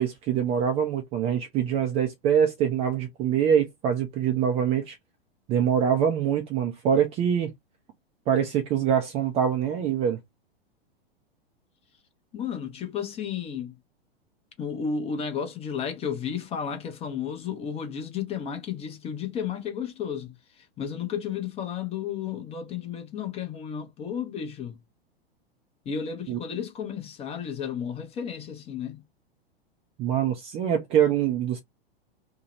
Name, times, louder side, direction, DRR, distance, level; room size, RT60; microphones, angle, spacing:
voice 1, 0.0-5.0 5.5-7.5 8.3-10.2 26.3-26.4 30.0-31.6, right 8 dB, 20° right, 0.4 m, -24 dB
voice 2, 12.3-13.7 14.6-24.8 25.9-29.0, left 7 dB, 20° left, 0.6 m, -33 dB
2.7 x 2.0 x 2.9 m
figure-of-eight pair, 100°, 31 cm